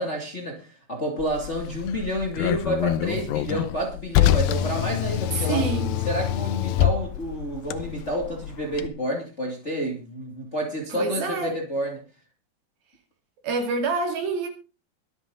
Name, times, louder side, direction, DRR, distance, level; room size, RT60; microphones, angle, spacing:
voice 1, 0.0-5.6 6.0-12.0, equal, 20° left, 2.2 m, -29 dB
Car, 1.2-8.9, left 12 dB, 75° left, 2.3 m, -26 dB
voice 2, 5.3-6.0 10.9-11.5 13.4-14.5, right 4 dB, 70° right, 4.1 m, -27 dB
23.0 x 8.0 x 3.9 m
omnidirectional pair, 4.5 m